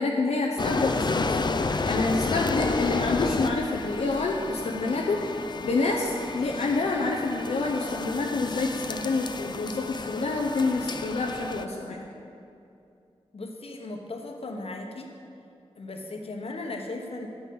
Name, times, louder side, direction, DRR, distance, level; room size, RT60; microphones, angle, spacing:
voice 1, 0.0-1.4 1.8-5.2 5.6-12.0, left 3 dB, 90° left, -1 dB, 0.7 m, -27 dB
sound 1, 0.6-11.6, left 3 dB, 45° left, 0.5 m, -31 dB
voice 2, 13.3-15.1 15.8-17.3, left 2 dB, 65° left, 2 dB, 1.1 m, -37 dB
8.9 x 5.5 x 7.7 m, 2.6 s
cardioid pair, 50°, 11 cm